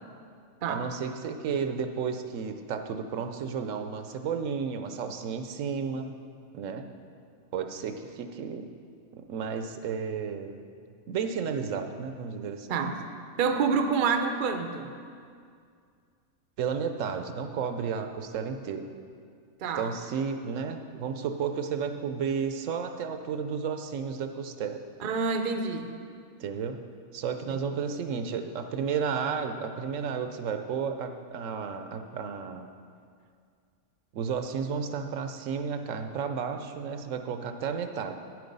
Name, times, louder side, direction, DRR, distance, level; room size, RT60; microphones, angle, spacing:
voice 1, 0.7-6.1 6.5-6.9 7.5-8.7 9.1-10.6 11.1-12.7 16.6-18.9 19.8-24.8 26.4-26.8 27.1-32.7 34.1-38.1, right 6 dB, 70° right, 7 dB, 1.0 m, -32 dB
voice 2, 13.4-14.9 19.6-19.9 25.0-25.9 27.5-27.6, right 5 dB, 50° right, 6 dB, 0.6 m, -27 dB
9.1 x 7.8 x 5.3 m, 2.2 s
omnidirectional pair, 1.4 m